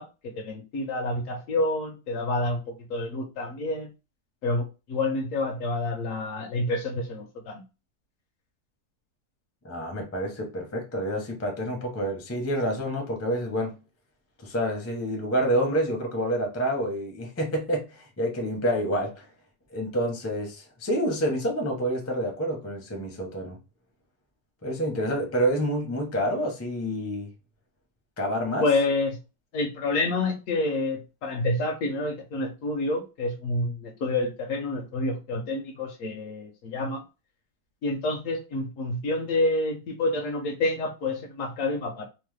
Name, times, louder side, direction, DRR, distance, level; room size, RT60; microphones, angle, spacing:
voice 1, 0.0-3.9 4.4-7.6 28.6-29.2 29.5-37.0 37.8-42.1, left 2 dB, 70° left, 0.8 m, -28 dB
voice 2, 9.6-13.8 14.4-19.3 19.7-23.6 24.6-27.3 28.2-28.7, equal, 20° left, 0.4 m, -28 dB
3.1 x 2.1 x 3.2 m
omnidirectional pair, 1.6 m